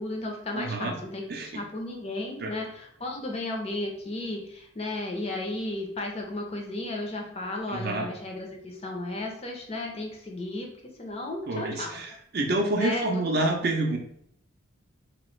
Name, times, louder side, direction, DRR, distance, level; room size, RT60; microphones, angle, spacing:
voice 1, 0.0-10.7 11.0-12.0 12.8-13.4, left 2 dB, 30° left, 1 dB, 0.5 m, -34 dB
voice 2, 0.5-1.0 1.3-1.6 2.4-2.5 7.7-8.1 11.5-14.0, right 2 dB, 50° right, 2 dB, 0.5 m, -28 dB
2.9 x 2.4 x 3.0 m, 0.71 s
head